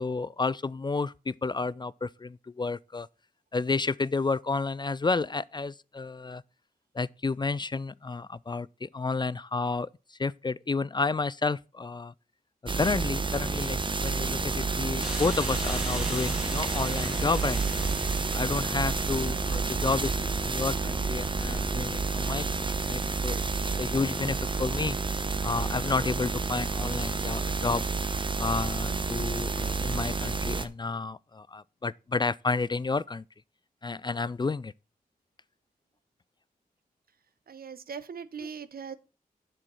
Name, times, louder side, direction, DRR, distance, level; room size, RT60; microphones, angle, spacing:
voice 1, 0.0-3.1 3.5-6.4 6.9-12.1 12.8-17.9 18.3-25.0 25.4-27.8 28.4-33.2 33.8-34.7, left 4 dB, 30° left, 0.4 m, -31 dB
sound 1, 12.7-30.7, right 4 dB, 30° right, 0.9 m, -30 dB
sound 2, 15.0-22.4, equal, 5° right, 2.5 m, -41 dB
voice 2, 37.5-39.0, right 6 dB, 70° right, 0.9 m, -40 dB
7.5 x 6.3 x 6.3 m
cardioid pair, 55°, 16 cm